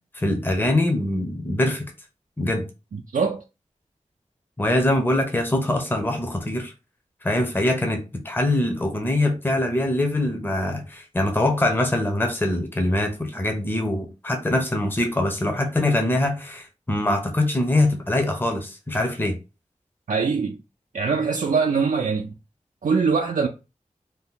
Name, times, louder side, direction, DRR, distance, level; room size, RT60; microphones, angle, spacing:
voice 1, 0.1-1.9 2.4-2.6 4.6-6.7 7.2-19.4, left 1 dB, 15° left, 0.6 m, -23 dB
voice 2, 2.9-3.4 20.1-20.6 20.9-22.3 22.8-23.5, right 5 dB, 75° right, 0.4 m, -22 dB
2.7 x 2.1 x 3.6 m
wide cardioid pair, 75°, 13 cm